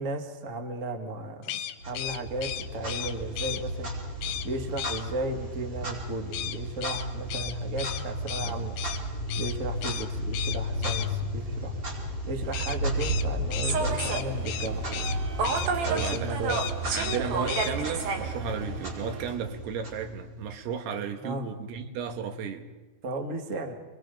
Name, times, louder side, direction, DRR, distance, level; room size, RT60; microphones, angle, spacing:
voice 1, 0.0-3.9 4.4-8.8 9.4-11.7 12.3-15.0 15.8-16.6 21.2-21.4 23.0-23.7, right 2 dB, 50° right, 4 dB, 0.9 m, -35 dB
sound 1, 1.4-3.6 4.2-4.5 4.8-5.0 6.3-9.0 9.3-9.5 9.8-10.1 10.3-11.1 12.5-15.2 15.4-15.7 16.0-16.2 16.5-17.2 17.5-17.7, left 12 dB, 75° left, 2.5 m, -35 dB
Clock, 1.8-20.5, equal, 30° right, 5.3 m, -33 dB
Human voice / Subway metro underground, 13.6-19.3, right 5 dB, 70° right, 3.5 m, -32 dB
voice 2, 15.8-16.4 16.8-22.7, right 7 dB, 85° right, 7 dB, 3.4 m, -34 dB
29.0 x 22.5 x 5.2 m, 1.3 s
omnidirectional pair, 4.5 m